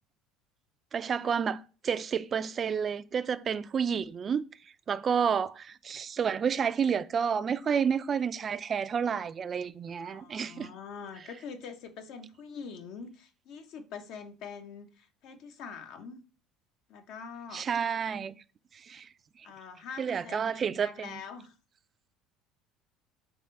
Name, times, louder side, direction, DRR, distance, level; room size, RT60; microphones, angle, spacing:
voice 1, 0.9-4.4 4.9-10.7 17.5-18.3 18.7-19.1 19.4-19.5 20.0-21.2, right 7 dB, 35° right, 0.3 m, -30 dB
voice 2, 9.9-16.2 16.9-17.7 19.4-21.5, left 6 dB, 65° left, 0.7 m, -44 dB
3.5 x 3.3 x 4.3 m
supercardioid pair, 105°, 0 cm